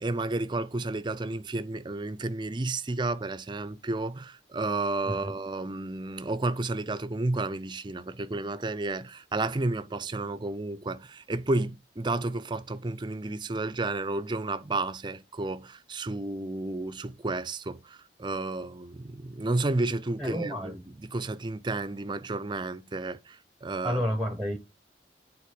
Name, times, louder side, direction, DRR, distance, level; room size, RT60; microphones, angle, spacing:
voice 1, 0.0-24.0, right 2 dB, 25° right, 0.5 m, -32 dB
voice 2, 20.2-20.8 23.8-24.6, equal, ahead, 0.9 m, -30 dB
8.4 x 4.1 x 6.8 m
head